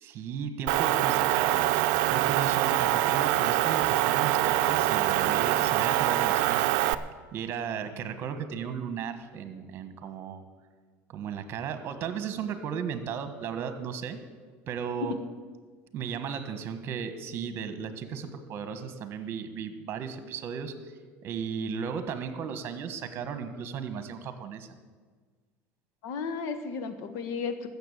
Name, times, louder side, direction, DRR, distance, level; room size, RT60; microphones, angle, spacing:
voice 1, 0.0-6.7 7.3-10.4 11.1-14.2 14.7-15.2 15.9-20.9 21.2-24.7, right 7 dB, 45° right, 10 dB, 1.5 m, -35 dB
Motor vehicle (road) / Engine, 0.7-6.9, right 14 dB, 75° right, 0.5 m, -24 dB
voice 2, 26.0-27.7, left 5 dB, 65° left, 9 dB, 1.4 m, -34 dB
13.5 x 7.2 x 8.4 m, 1.5 s
supercardioid pair, 120°, 6 cm